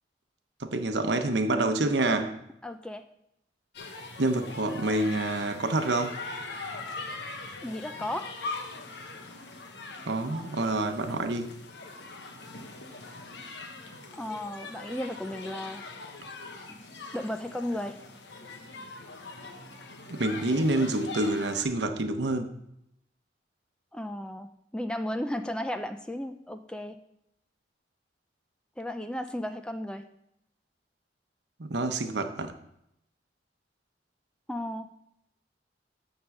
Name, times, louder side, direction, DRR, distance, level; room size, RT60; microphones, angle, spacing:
voice 1, 0.6-2.4 4.2-6.2 10.1-11.5 20.1-22.5 31.6-32.5, right 2 dB, 75° right, 0.9 m, -27 dB
voice 2, 2.6-3.1 7.6-8.3 14.1-15.9 16.7-16.9 17.1-18.0 23.9-27.0 28.8-30.0 34.5-34.9, left 1 dB, 5° left, 0.4 m, -34 dB
sound 1, 3.7-21.6, left 3 dB, 75° left, 1.1 m, -42 dB
11.0 x 3.8 x 7.1 m
head